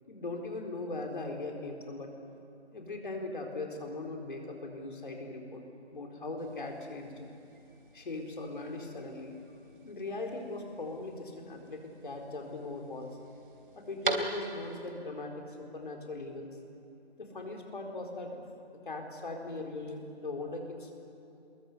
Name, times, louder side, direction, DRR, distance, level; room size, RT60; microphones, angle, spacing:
voice 1, 0.1-2.1 2.7-5.6 5.9-7.2 7.9-9.3 9.8-13.1 13.7-16.6 17.2-18.4 18.8-20.9, left 2 dB, 50° left, 1 dB, 4.4 m, -39 dB
sound 1, 6.4-14.9, right 3 dB, 50° right, 3.2 m, -42 dB
27.0 x 22.5 x 8.2 m, 2.9 s
figure-of-eight pair, 165°, 33 cm